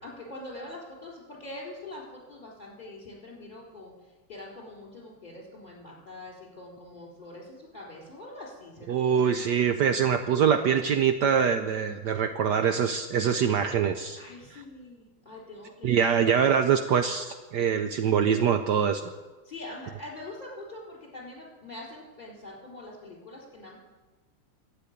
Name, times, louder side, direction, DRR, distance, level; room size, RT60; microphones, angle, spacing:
voice 1, 0.0-3.9 4.3-9.2 14.2-16.3 19.5-23.8, left 2 dB, 20° left, -2 dB, 3.9 m, -44 dB
voice 2, 8.9-14.2 14.5-14.6 15.8-19.1, right 7 dB, 70° right, 8 dB, 1.1 m, -24 dB
12.0 x 8.6 x 9.3 m, 1.2 s
omnidirectional pair, 2.3 m